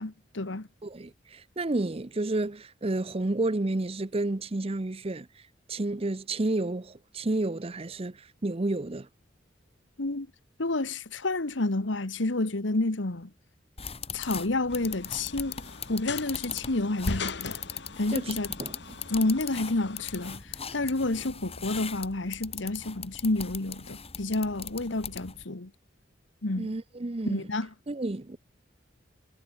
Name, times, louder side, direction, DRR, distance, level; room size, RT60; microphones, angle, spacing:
voice 1, 0.0-0.7 10.0-10.3 10.6-13.3 14.1-15.6 15.9-17.6 18.0-18.5 19.1-20.4 20.7-25.7 26.4-26.7 27.2-27.7, left 2 dB, 85° left, 1.5 m, -29 dB
voice 2, 0.8-5.3 5.7-9.1 18.1-18.3 18.6-19.0 26.6-27.4 27.9-28.4, right 2 dB, 30° right, 0.7 m, -31 dB
sound 1, 13.8-25.4, left 7 dB, 35° left, 5.1 m, -40 dB
sound 2, 14.7-20.4, left 3 dB, 65° left, 1.8 m, -39 dB
head